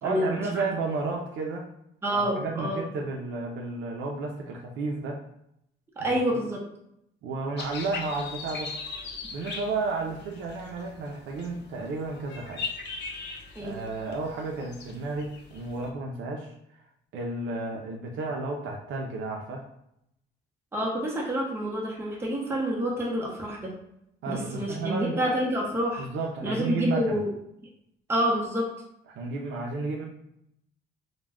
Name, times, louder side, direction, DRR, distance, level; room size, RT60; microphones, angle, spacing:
voice 1, 0.0-1.7 2.1-5.2 6.1-6.2 7.2-8.7 9.3-12.6 13.6-16.5 17.1-19.7 24.2-25.2 26.0-27.2 29.1-30.0, right 3 dB, 80° right, 0 dB, 0.5 m, -32 dB
voice 2, 2.0-2.8 6.0-6.6 13.6-13.8 20.7-23.7 24.3-26.1 26.4-27.3 28.1-28.7, equal, 10° right, -2 dB, 0.7 m, -28 dB
sound 1, 7.6-15.9, left 4 dB, 60° left, 0.6 m, -40 dB
2.3 x 2.1 x 3.4 m, 0.77 s
cardioid pair, 90°, 20 cm